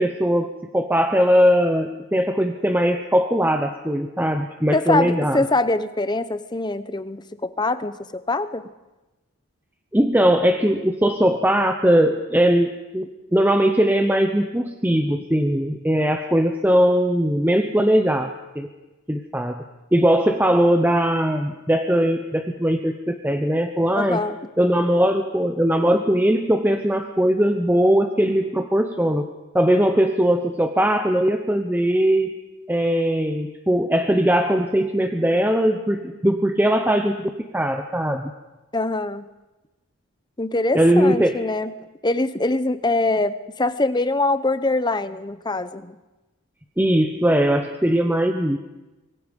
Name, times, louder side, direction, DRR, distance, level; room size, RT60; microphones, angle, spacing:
voice 1, 0.0-5.5 9.9-18.7 19.1-19.6 19.9-24.2 24.6-29.2 29.5-32.4 32.7-38.3 40.7-41.4 46.8-48.6, equal, 10° right, 6 dB, 0.9 m, -20 dB
voice 2, 4.7-8.7 23.9-24.4 38.7-39.3 40.4-41.7 42.0-46.0, left 2 dB, 20° left, 12 dB, 0.7 m, -23 dB
24.5 x 23.5 x 5.3 m, 1.1 s
head